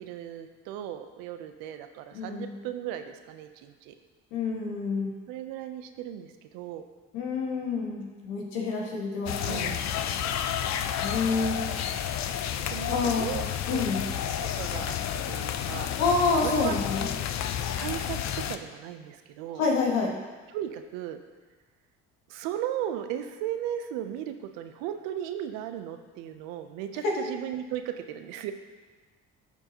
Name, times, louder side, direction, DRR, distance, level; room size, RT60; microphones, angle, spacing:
voice 1, 0.0-3.9 5.3-6.8 9.4-9.8 12.7-13.4 13.7-13.8 14.4-16.0 16.4-16.8 17.8-19.6 20.5-21.2 22.3-28.5, right 11 dB, 80° right, 8 dB, 0.6 m, -36 dB
voice 2, 2.1-2.5 4.3-5.1 7.1-9.8 11.0-11.6 12.9-13.4 13.7-14.0 16.0-17.1 19.6-20.2, left 4 dB, 80° left, -2 dB, 1.8 m, -28 dB
sound 1, 9.3-18.6, left 9 dB, 55° left, 0.6 m, -31 dB
13.5 x 4.6 x 2.9 m, 1.3 s
hypercardioid pair, 60°, 33 cm